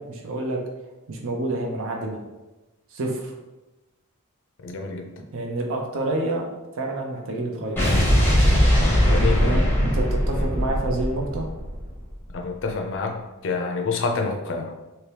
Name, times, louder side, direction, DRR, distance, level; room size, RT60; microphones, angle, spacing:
voice 1, 0.1-0.6 1.1-2.2 2.9-3.3 5.3-6.5 6.8-7.8 9.1-11.5, right 2 dB, 60° right, 1 dB, 0.5 m, -28 dB
voice 2, 4.6-5.1 9.1-9.6 10.4-10.5 12.3-13.2 13.4-14.7, left 4 dB, 60° left, 3 dB, 0.5 m, -27 dB
Explosion, 7.8-12.1, equal, 10° left, 0.7 m, -20 dB
2.8 x 2.7 x 3.3 m, 1.1 s
head